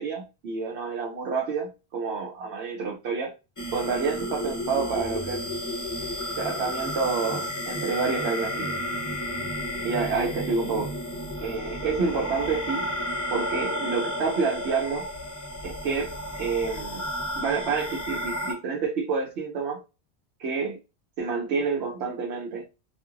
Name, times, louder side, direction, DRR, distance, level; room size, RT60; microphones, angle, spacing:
voice 1, 0.0-3.3 3.7-5.4 6.4-8.8 9.8-10.9 11.4-12.9 13.3-15.1 15.6-17.1 17.4-19.8 20.4-20.8 21.2-22.7, right 5 dB, 75° right, 0.9 m, -28 dB
sound 1, 3.6-18.5, equal, 25° left, 0.5 m, -32 dB
2.4 x 2.3 x 3.0 m
omnidirectional pair, 1.1 m